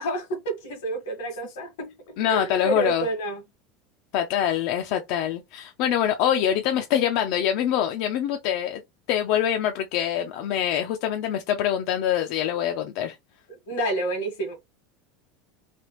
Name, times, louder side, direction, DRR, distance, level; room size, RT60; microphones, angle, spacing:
voice 1, 0.0-3.4 13.5-14.6, right 2 dB, 85° left, 1.5 m, -29 dB
voice 2, 2.2-3.0 4.1-8.8 9.1-13.2, left 10 dB, 60° left, 0.4 m, -24 dB
3.3 x 2.3 x 3.0 m
supercardioid pair, 140°, 0 cm